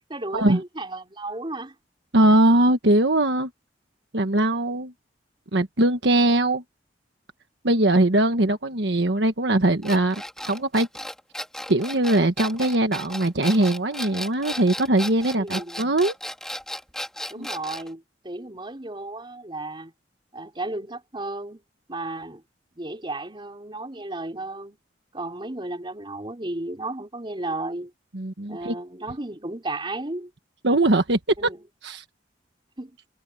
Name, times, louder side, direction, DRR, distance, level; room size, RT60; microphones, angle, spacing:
voice 1, 0.1-1.7 15.4-15.8 17.3-19.9 20.3-21.6 21.9-22.4 22.7-24.8 25.1-27.9 28.5-30.3 31.4-31.6 32.8-33.0, right 2 dB, 25° right, 4.3 m, -34 dB
voice 2, 2.1-3.5 4.1-4.9 5.5-6.6 7.6-10.9 11.7-16.1 17.4-17.5 28.1-28.7 30.6-31.5 31.8-32.0, right 1 dB, 70° right, 1.4 m, -21 dB
sound 1, 9.8-17.9, left 1 dB, 5° left, 2.2 m, -35 dB
head